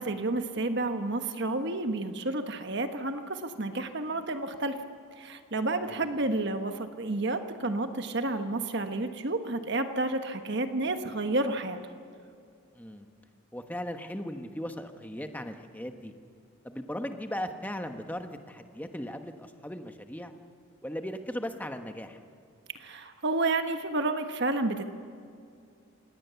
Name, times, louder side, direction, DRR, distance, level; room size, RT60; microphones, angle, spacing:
voice 1, 0.0-4.8 5.2-11.8 22.8-24.8, right 2 dB, 50° right, 7 dB, 1.3 m, -30 dB
voice 2, 12.7-13.1 13.5-16.1 16.6-20.3 20.8-22.2, equal, 10° left, 6 dB, 1.1 m, -37 dB
26.5 x 18.5 x 7.0 m, 2.3 s
head